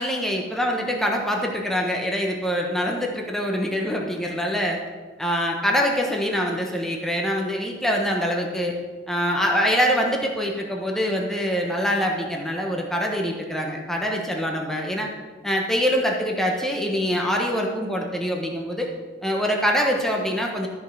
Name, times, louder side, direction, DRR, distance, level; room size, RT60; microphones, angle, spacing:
voice 1, 0.0-4.8 5.2-8.8 9.1-15.1 15.4-18.9 19.2-20.7, equal, ahead, 0 dB, 1.2 m, -24 dB
13.0 x 5.5 x 6.4 m, 1.4 s
head